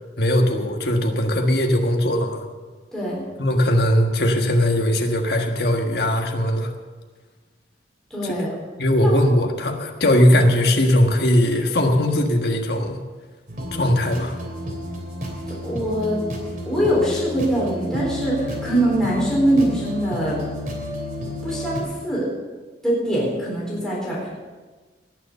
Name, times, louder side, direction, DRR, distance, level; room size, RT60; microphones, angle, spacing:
voice 1, 0.2-2.4 3.4-6.7 8.2-8.3 8.8-13.0 13.7-14.3, left 1 dB, 60° left, 2 dB, 1.6 m, -19 dB
voice 2, 8.1-8.5 9.0-9.3 15.5-16.2 16.7-20.4 21.4-22.3 22.8-24.3, right 1 dB, 5° left, -6 dB, 3.9 m, -23 dB
sound 1, 13.5-21.8, left 1 dB, 45° right, 3.0 m, -31 dB
19.0 x 7.0 x 6.7 m, 1.4 s
head